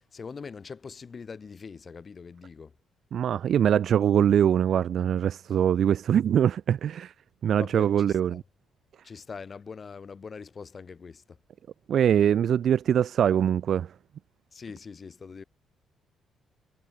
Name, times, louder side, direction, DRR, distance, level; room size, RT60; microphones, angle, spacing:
voice 1, 0.1-2.7 7.6-8.4 9.0-11.4 14.5-15.4, left 5 dB, 25° left, 6.0 m, -42 dB
voice 2, 3.1-7.1 7.4-8.4 11.9-13.9, right 9 dB, 45° right, 1.3 m, -23 dB
cardioid pair, 180°, 0 cm